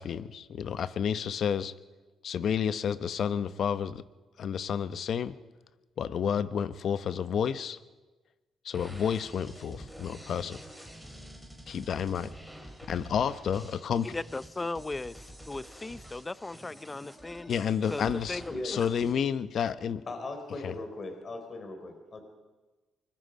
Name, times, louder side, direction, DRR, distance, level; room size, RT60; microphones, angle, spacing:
voice 1, 0.0-1.7 2.2-4.0 4.4-5.4 6.0-7.8 8.6-10.6 11.7-12.3 12.9-14.1 17.5-20.0 20.6-20.7, left 8 dB, 60° left, 14 dB, 0.9 m, -30 dB
sound 1, 8.7-19.1, equal, 5° left, 4.5 m, -48 dB
voice 2, 14.0-17.5 17.9-18.4 18.7-18.8, left 2 dB, 20° left, 17 dB, 0.6 m, -37 dB
voice 3, 20.1-22.2, left 2 dB, 40° left, 5 dB, 4.1 m, -38 dB
24.5 x 21.5 x 5.3 m, 1.2 s
cardioid pair, 90°, 0 cm